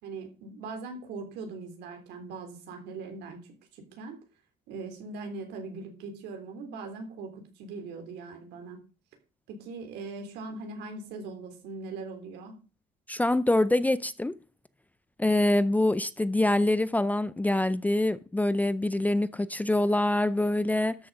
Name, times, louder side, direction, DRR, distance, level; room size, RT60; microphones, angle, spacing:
voice 1, 0.0-3.4 3.7-4.2 4.7-8.8 9.5-12.6, right 3 dB, 85° right, 3.5 m, -40 dB
voice 2, 13.1-14.3 15.2-21.0, left 1 dB, 10° left, 0.5 m, -25 dB
13.0 x 6.3 x 5.4 m
cardioid pair, 110°, 17 cm